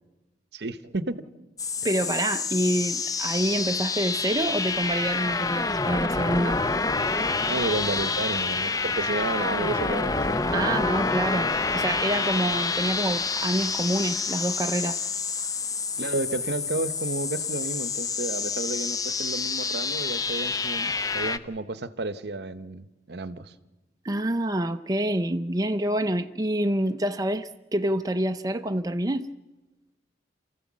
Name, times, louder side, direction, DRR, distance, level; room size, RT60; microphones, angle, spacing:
voice 1, 0.5-1.3 6.6-6.7 7.4-10.8 16.0-23.5, right 2 dB, 65° right, 0.9 m, -32 dB
sound 1, 1.6-21.4, left 4 dB, 20° left, 0.6 m, -28 dB
voice 2, 1.8-6.6 10.5-11.5 11.7-15.0 24.0-29.3, right 1 dB, 20° right, 0.6 m, -27 dB
28.0 x 14.5 x 7.3 m
head